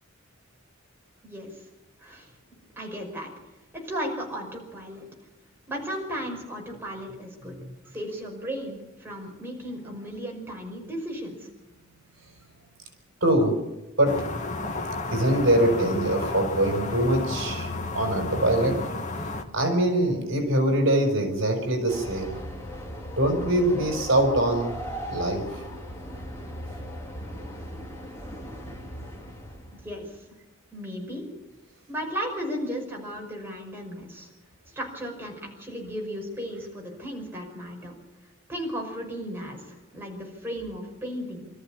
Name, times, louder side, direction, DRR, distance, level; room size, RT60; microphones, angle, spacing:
voice 1, 1.2-1.6 2.0-2.3 2.8-3.3 3.7-5.0 5.7-7.6 7.9-11.5 29.7-30.3 30.7-31.3 31.9-34.3 34.8-37.9 38.5-41.5, equal, 10° right, -1 dB, 5.5 m, -35 dB
voice 2, 13.2-13.6 14.0-14.2 15.1-18.8 19.5-22.3 23.2-24.7 25.1-25.6, right 1 dB, 65° right, 5 dB, 4.5 m, -23 dB
sound 1, 14.0-19.4, left 2 dB, 35° left, 2.0 m, -32 dB
Train, 21.9-30.0, equal, 15° left, 3.4 m, -38 dB
25.0 x 14.0 x 8.7 m, 1.0 s
head